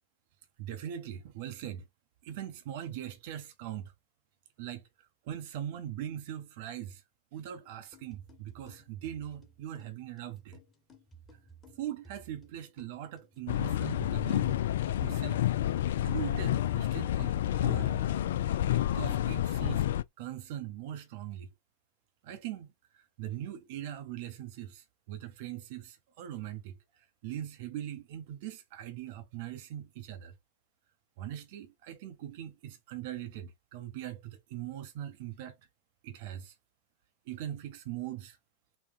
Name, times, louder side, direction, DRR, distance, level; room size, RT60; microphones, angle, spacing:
voice 1, 0.6-1.9 2.2-3.9 4.6-7.0 7.3-10.6 11.7-14.6 15.0-15.4 16.0-18.0 18.8-19.9 20.2-21.5 22.2-30.3 31.2-35.6 36.0-36.6 37.3-38.4, right 11 dB, 50° right, 0.6 m, -41 dB
sound 1, 7.9-19.9, right 2 dB, 20° left, 1.4 m, -58 dB
sound 2, 13.5-20.0, left 12 dB, 60° left, 0.3 m, -29 dB
3.9 x 2.2 x 3.8 m
figure-of-eight pair, 90°, 0 cm